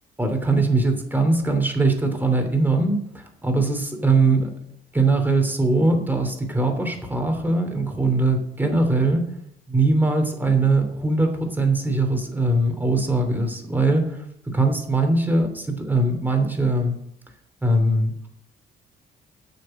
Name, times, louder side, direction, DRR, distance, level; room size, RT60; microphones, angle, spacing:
voice 1, 0.2-4.5 4.9-9.3 9.7-16.9 17.6-18.3, right 2 dB, 10° right, 4 dB, 3.0 m, -21 dB
9.1 x 6.9 x 7.7 m, 0.73 s
cardioid pair, 90°, 20 cm